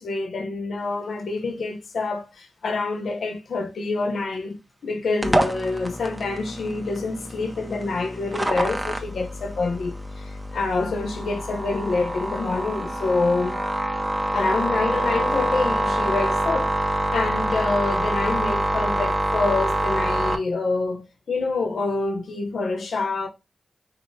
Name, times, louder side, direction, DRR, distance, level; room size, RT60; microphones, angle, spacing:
voice 1, 0.0-4.6 4.8-13.6 14.3-16.7 17.1-23.3, left 3 dB, 85° left, 0.9 m, -26 dB
sound 1, 5.2-20.4, right 1 dB, 20° right, 1.1 m, -26 dB
4.9 x 3.2 x 3.2 m
cardioid pair, 40°, 0 cm